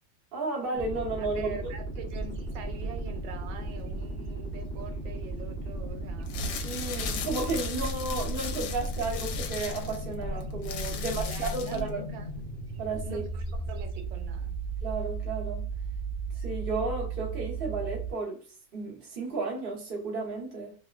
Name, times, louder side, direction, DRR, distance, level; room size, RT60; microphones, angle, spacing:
voice 1, 0.3-1.6 6.6-12.0 12.8-13.2 14.8-15.7 16.3-18.4 18.7-20.7, right 3 dB, 40° right, 0.9 m, -33 dB
sound 1, 0.7-18.1, right 3 dB, 45° left, 0.9 m, -36 dB
voice 2, 1.2-6.6 11.0-12.4 13.0-14.6, right 5 dB, 85° right, 1.3 m, -44 dB
sound 2, 2.1-15.2, equal, 65° right, 1.0 m, -40 dB
sound 3, 6.2-11.9, left 4 dB, 80° left, 1.3 m, -37 dB
3.1 x 2.0 x 2.3 m
omnidirectional pair, 2.0 m